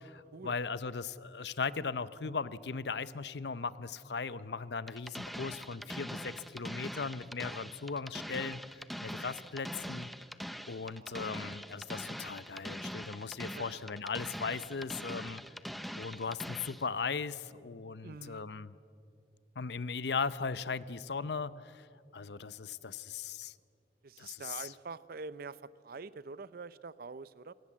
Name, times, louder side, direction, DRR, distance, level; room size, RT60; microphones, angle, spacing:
voice 1, 0.0-10.1 10.7-15.4 16.0-18.8 19.6-21.9 22.1-23.5 24.2-24.7, left 5 dB, 70° left, 16 dB, 0.7 m, -38 dB
sound 1, 4.9-16.9, equal, ahead, 0.6 m, -43 dB
voice 2, 10.7-11.3 13.6-13.8 18.0-18.4 24.0-27.5, right 4 dB, 55° right, 17 dB, 0.6 m, -46 dB
26.5 x 18.5 x 7.5 m, 2.5 s
head